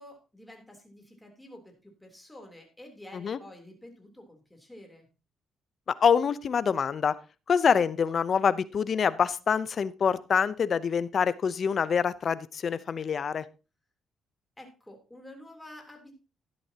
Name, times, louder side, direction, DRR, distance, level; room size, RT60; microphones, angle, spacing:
voice 1, 0.0-5.1 14.6-16.1, left 1 dB, 5° left, 2 dB, 3.3 m, -49 dB
voice 2, 6.0-7.1 7.5-13.4, left 6 dB, 50° left, 16 dB, 0.7 m, -25 dB
12.0 x 10.5 x 2.9 m, 0.31 s
cardioid pair, 90°, 0 cm